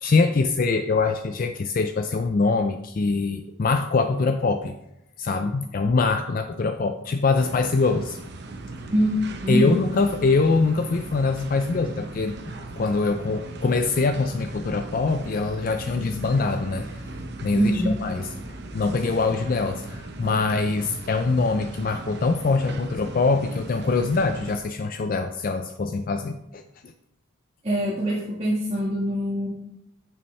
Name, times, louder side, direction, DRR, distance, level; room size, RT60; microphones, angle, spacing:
voice 1, 0.0-4.7 5.2-8.2 9.5-12.3 12.8-17.0 17.4-18.3 18.7-26.6, left 4 dB, 40° left, 8 dB, 0.3 m, -23 dB
sound 1, 7.4-24.6, right 2 dB, 50° right, 0.8 m, -38 dB
voice 2, 8.9-9.8 17.5-17.9 27.6-29.5, equal, 30° right, -6 dB, 1.4 m, -23 dB
8.8 x 6.8 x 3.2 m, 0.83 s
head